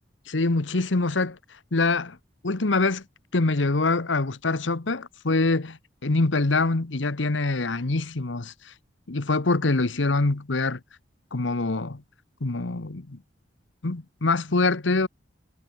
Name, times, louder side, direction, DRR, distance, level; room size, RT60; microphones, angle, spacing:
voice 1, 0.3-1.4 1.7-2.2 2.4-3.0 3.3-8.7 9.1-10.8 11.3-12.0 12.4-13.2 13.8-15.1, left 3 dB, 80° left, 1.2 m, -24 dB
head